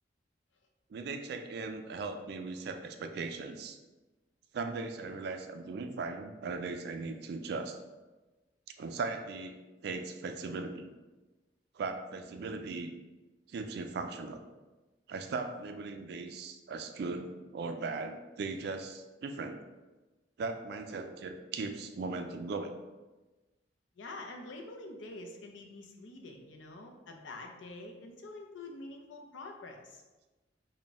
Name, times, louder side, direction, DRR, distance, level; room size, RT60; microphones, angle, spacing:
voice 1, 0.9-3.8 4.5-7.8 8.8-9.6 9.8-10.9 11.7-12.9 13.5-14.4 15.1-19.6 20.4-22.7, right 3 dB, 60° right, 6 dB, 0.3 m, -38 dB
voice 2, 24.0-30.0, left 2 dB, 85° left, 2 dB, 0.5 m, -46 dB
3.9 x 2.2 x 3.5 m, 1.2 s
head